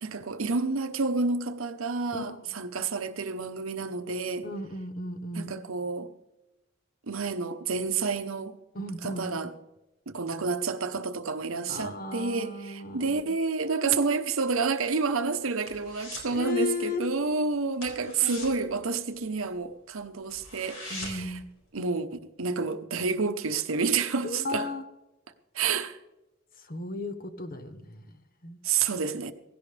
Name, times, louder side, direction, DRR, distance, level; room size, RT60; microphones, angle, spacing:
voice 1, 0.0-4.5 5.3-6.1 7.1-8.6 9.0-9.5 10.1-21.4 21.7-24.7 25.5-26.0 28.6-29.3, right 4 dB, 75° right, 0.9 m, -29 dB
voice 2, 2.1-2.5 4.4-5.6 8.7-9.5 11.7-13.3 13.7-14.2 16.3-17.1 17.8-18.5 20.9-21.5 24.2-24.8 26.6-28.9, left 2 dB, 45° left, 1.1 m, -36 dB
sound 1, 14.8-16.4 16.7-17.0 17.2-17.4 17.7-19.6 20.0-20.1 20.3-21.4 21.8-21.9, left 2 dB, 70° left, 4.3 m, -42 dB
17.0 x 16.0 x 3.4 m
head